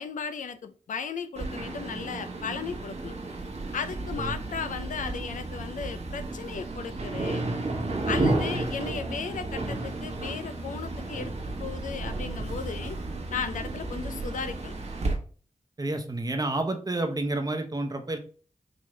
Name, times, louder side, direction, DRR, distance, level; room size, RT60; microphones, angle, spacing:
voice 1, 0.0-3.2 3.7-7.5 8.1-11.3 11.6-13.0 13.3-14.7, left 6 dB, 85° left, 0.4 m, -35 dB
sound 1, 1.4-15.1, right 2 dB, 55° right, 1.0 m, -32 dB
voice 2, 15.8-18.2, right 2 dB, 30° right, 0.8 m, -29 dB
5.0 x 2.7 x 3.1 m
wide cardioid pair, 65°, 13 cm